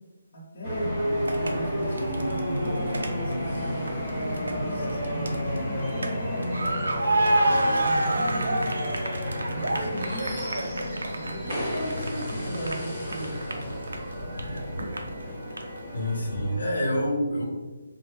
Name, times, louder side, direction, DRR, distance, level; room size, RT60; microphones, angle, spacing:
voice 1, 0.3-0.9 1.4-6.7 7.5-10.3 11.1-13.8, equal, 40° left, -5 dB, 1.2 m, -38 dB
sound 1, 0.6-16.6, equal, 5° right, 1.1 m, -31 dB
sound 2, 1.3-1.5 2.0-3.6 3.9-4.5 4.9-6.1 6.4-15.2 15.5-15.6, right 1 dB, 85° right, 0.6 m, -28 dB
Wind instrument woodwind instrument, 6.0-11.9, left 1 dB, 10° left, 0.5 m, -42 dB
voice 2, 15.9-17.5, equal, 75° left, -2 dB, 0.8 m, -27 dB
4.7 x 2.1 x 3.4 m, 1.3 s
hypercardioid pair, 175°, 0 cm